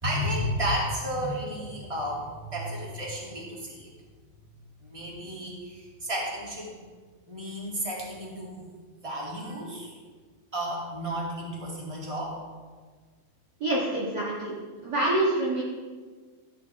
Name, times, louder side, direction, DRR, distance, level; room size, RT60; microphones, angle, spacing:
voice 1, 0.0-3.9 4.8-6.8 7.3-8.6 9.0-9.9 10.5-12.4, equal, 10° right, -4 dB, 1.9 m, -32 dB
voice 2, 13.6-14.5 14.8-15.6, right 1 dB, 50° right, -6 dB, 1.2 m, -26 dB
14.0 x 10.5 x 3.5 m, 1.5 s
omnidirectional pair, 4.2 m